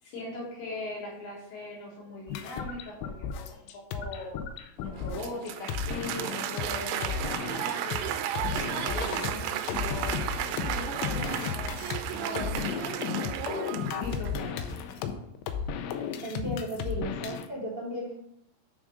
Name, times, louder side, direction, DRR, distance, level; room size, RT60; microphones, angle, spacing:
voice 1, 0.0-4.3 4.8-8.1 8.5-10.2 10.7-13.5 14.0-15.0, left 2 dB, 65° left, -5 dB, 4.9 m, -40 dB
sound 1, 2.3-6.7 7.0-8.0 8.4-17.5, left 7 dB, 85° left, 2.6 m, -34 dB
Applause, 4.9-14.5, right 10 dB, 85° right, 3.1 m, -34 dB
voice 2, 16.2-18.1, equal, 60° right, -5 dB, 0.6 m, -35 dB
9.6 x 3.7 x 5.2 m, 0.78 s
omnidirectional pair, 5.6 m